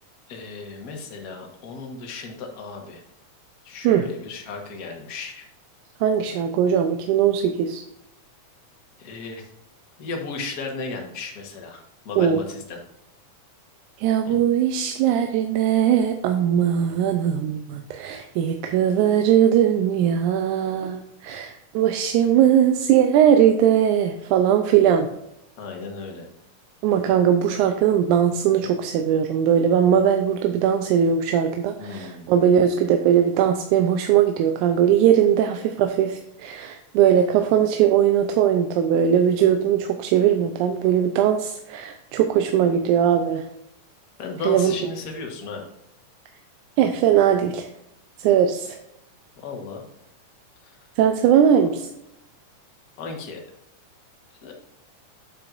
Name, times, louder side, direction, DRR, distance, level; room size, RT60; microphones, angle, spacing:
voice 1, 0.3-3.0 3.6-5.4 9.0-9.4 10.0-12.8 14.2-14.4 25.6-26.3 31.8-32.3 44.2-45.7 49.4-49.9 50.6-50.8 51.6-51.7 53.0-53.4 54.4-54.5, left 4 dB, 45° left, 1 dB, 1.4 m, -35 dB
voice 2, 6.0-7.8 12.2-12.4 14.0-25.1 26.8-43.5 44.4-44.8 46.8-47.7 48.2-48.8 51.0-51.9, right 9 dB, 90° right, 6 dB, 2.1 m, -20 dB
8.8 x 7.0 x 2.6 m, 0.81 s
omnidirectional pair, 3.4 m